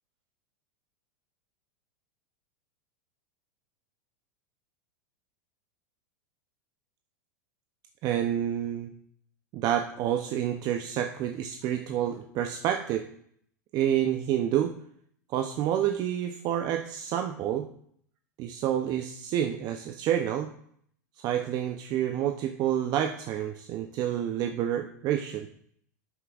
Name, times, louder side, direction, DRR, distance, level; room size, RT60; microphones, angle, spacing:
voice 1, 8.0-8.9 9.5-13.0 13.7-14.7 15.3-17.7 18.4-20.5 21.2-25.5, right 10 dB, 45° right, 6 dB, 0.6 m, -28 dB
12.0 x 6.6 x 2.4 m, 0.64 s
hypercardioid pair, 110°, 10 cm